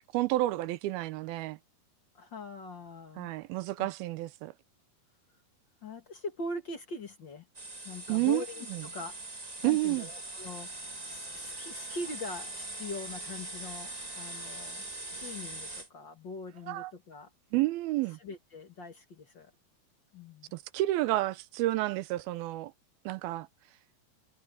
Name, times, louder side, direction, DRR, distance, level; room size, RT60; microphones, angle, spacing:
voice 1, 0.1-1.6 3.2-4.5 8.1-8.4 8.7-8.8 9.6-10.1 16.7-16.9 17.5-18.2 20.5-22.7 23.1-23.5, right 17 dB, 85° right, 2.6 m, -30 dB
voice 2, 2.1-3.3 3.8-3.9 5.8-7.5 7.8-10.7 11.1-14.8 15.1-17.3 18.2-19.5 20.1-20.5, left 2 dB, 40° left, 1.8 m, -42 dB
sound 1, 7.5-15.9, right 2 dB, 20° right, 1.0 m, -42 dB
omnidirectional pair, 4.3 m